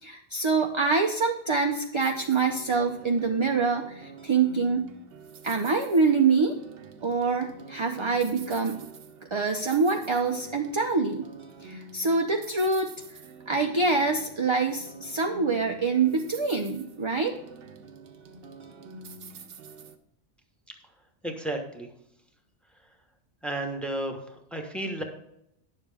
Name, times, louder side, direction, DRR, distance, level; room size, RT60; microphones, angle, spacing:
voice 1, 0.0-4.8 5.4-6.6 7.0-8.9 9.3-11.3 11.6-12.9 13.5-17.4, right 4 dB, 35° right, 3 dB, 0.5 m, -25 dB
sound 1, 2.0-20.0, right 4 dB, 60° right, 0.9 m, -47 dB
voice 2, 21.2-21.9 23.4-24.2 24.5-25.0, right 1 dB, ahead, 3 dB, 1.1 m, -32 dB
10.0 x 7.1 x 3.5 m, 0.79 s
omnidirectional pair, 1.2 m